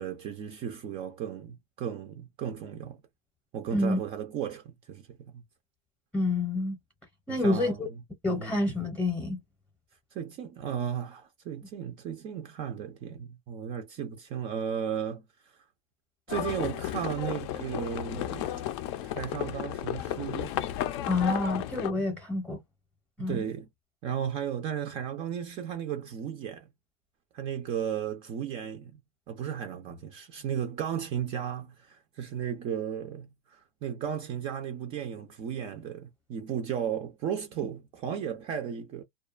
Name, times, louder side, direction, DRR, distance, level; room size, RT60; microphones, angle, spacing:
voice 1, 0.0-3.0 3.5-5.4 7.3-7.8 8.2-8.6 10.1-15.6 16.3-18.6 19.0-20.6 23.2-23.7 24.0-26.7 27.3-29.0 29.3-39.0, right 8 dB, 30° right, 0.4 m, -35 dB
voice 2, 3.7-4.0 6.1-6.8 7.3-7.9 8.2-9.4 21.1-22.6 23.2-23.4, left 2 dB, 5° left, 0.7 m, -28 dB
Livestock farm animals working animals, 16.3-21.9, left 12 dB, 50° left, 0.4 m, -33 dB
2.4 x 2.2 x 2.3 m
supercardioid pair, 160°, 18 cm